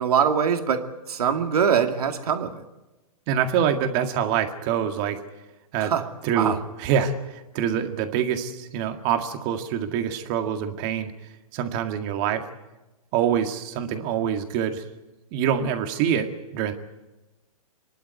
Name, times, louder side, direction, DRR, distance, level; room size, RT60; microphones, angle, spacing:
voice 1, 0.0-2.6 5.8-6.1 6.4-6.6, right 7 dB, 75° right, 5 dB, 2.3 m, -23 dB
voice 2, 3.3-5.2 5.7-5.9 6.2-11.1 11.5-12.4 13.1-14.8 15.3-16.7, right 8 dB, 35° right, 6 dB, 2.0 m, -25 dB
27.0 x 11.5 x 9.5 m, 1.1 s
hypercardioid pair, 135°, 20 cm